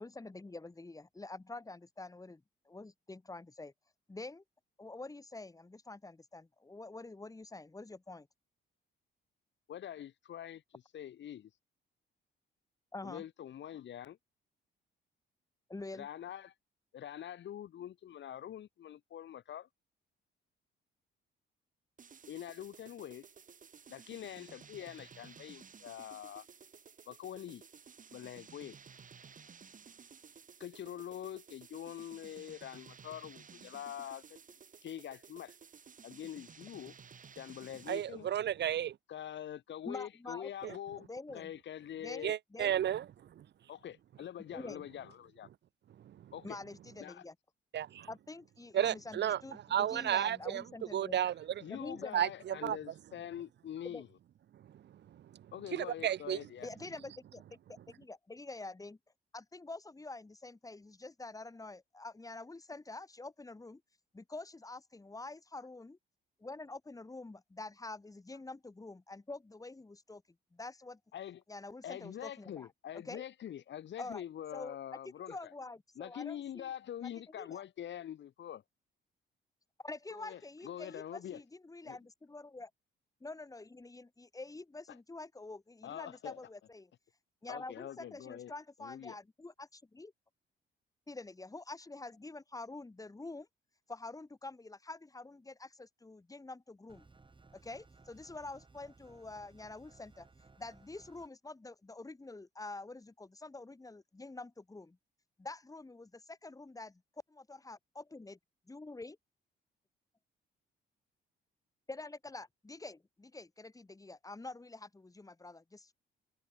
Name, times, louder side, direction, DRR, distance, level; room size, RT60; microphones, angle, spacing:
voice 1, 0.0-3.7 4.1-4.4 4.8-8.3 12.9-13.2 15.7-16.1 39.9-41.5 42.0-42.8 44.5-44.8 46.4-47.3 48.1-51.2 51.7-52.2 53.8-54.0 56.6-59.0 59.3-63.8 64.1-66.0 66.4-70.2 70.5-71.0 71.5-72.7 72.9-73.2 74.0-74.2 74.5-74.8 75.3-76.7 77.0-77.1 77.4-77.6 79.8-82.7 83.2-86.9 87.4-90.1 91.1-93.5 93.9-97.1 97.5-100.3 100.6-105.0 105.4-106.9 107.7-108.4 108.7-109.2 111.9-115.9, left 2 dB, 15° left, 2.7 m, -47 dB
voice 2, 9.7-11.5 13.0-14.2 15.9-16.5 16.9-19.7 22.3-23.2 23.9-26.5 27.1-27.6 28.1-28.8 30.6-34.4 34.8-35.6 36.0-36.9 37.4-38.3 39.1-41.1 41.3-42.4 43.7-45.5 46.3-46.6 47.0-47.2 48.8-48.9 51.6-54.1 55.5-56.7 71.1-71.4 71.8-75.5 76.0-78.6 80.1-81.4 81.8-82.0 84.9-85.0 85.8-86.4 87.5-88.5 88.8-89.2, left 10 dB, 65° left, 2.6 m, -45 dB
sound 1, 22.0-38.2, right 6 dB, 40° right, 2.5 m, -55 dB
voice 3, 37.9-38.9 40.6-40.7 42.2-43.0 43.4-43.5 47.7-48.1 48.7-49.4 49.7-50.6 50.9-51.5 52.1-52.8 55.7-56.4, right 10 dB, 60° right, 1.0 m, -32 dB
sound 2, 96.9-101.3, right 3 dB, 25° right, 5.8 m, -61 dB
cardioid pair, 90°, 20 cm